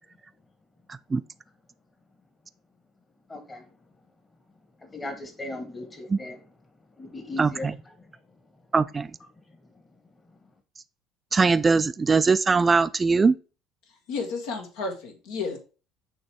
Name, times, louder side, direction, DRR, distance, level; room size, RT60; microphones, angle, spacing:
voice 1, 0.9-1.2 6.1-6.2 7.4-7.8 8.7-9.1 11.3-13.4, right 4 dB, 25° right, 0.3 m, -21 dB
voice 2, 3.3-3.6 4.8-6.4 7.0-7.7, left 2 dB, 25° left, 1.4 m, -37 dB
voice 3, 14.1-15.6, left 4 dB, 75° left, 1.5 m, -32 dB
6.5 x 3.2 x 4.6 m
hypercardioid pair, 65°, 0 cm